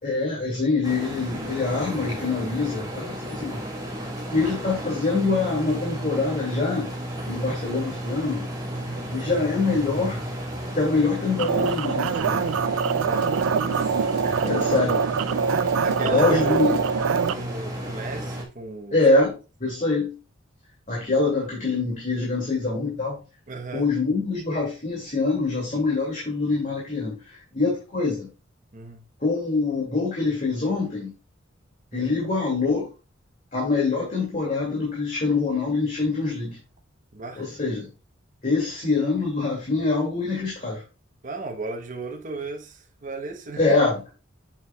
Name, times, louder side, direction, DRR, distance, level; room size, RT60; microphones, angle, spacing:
voice 1, 0.0-3.6 4.3-6.9 7.3-8.5 9.1-10.2 10.7-12.5 14.4-15.1 16.0-16.8 18.9-19.3 19.6-20.1 20.9-23.2 23.7-28.3 29.2-31.1 31.9-32.9 33.5-36.6 37.4-37.9 38.4-40.8 43.6-44.2, left 3 dB, 40° left, 2.4 m, -24 dB
sound 1, 0.8-18.4, equal, 15° right, 1.5 m, -33 dB
voice 2, 3.9-4.2 8.7-9.1 13.0-13.6 14.2-14.5 15.8-16.8 17.3-19.0 23.5-23.9 28.7-29.0 31.9-32.2 37.1-37.5 41.2-43.8, right 3 dB, 40° right, 1.0 m, -35 dB
sound 2, 11.4-17.3, right 6 dB, 75° right, 0.3 m, -24 dB
7.2 x 7.1 x 2.3 m
head